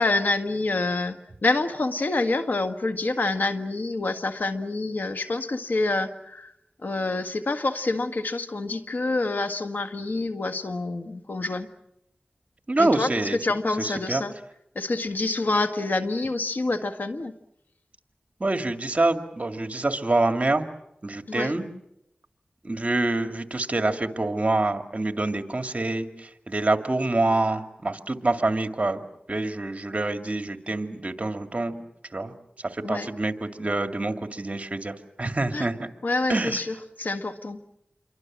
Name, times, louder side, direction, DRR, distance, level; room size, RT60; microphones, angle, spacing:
voice 1, 0.0-6.5 6.8-11.7 12.8-14.3 14.7-17.3 21.3-21.5 32.8-33.1 35.5-35.6 36.0-37.6, left 2 dB, 75° left, 8 dB, 1.7 m, -27 dB
voice 2, 12.7-13.4 13.8-14.2 18.4-20.7 21.0-21.7 22.6-26.1 26.5-29.0 29.3-31.7 32.1-32.3 32.7-35.8 36.3-36.6, right 2 dB, 45° right, 6 dB, 2.2 m, -26 dB
28.0 x 23.5 x 7.5 m, 0.82 s
wide cardioid pair, 50°, 3 cm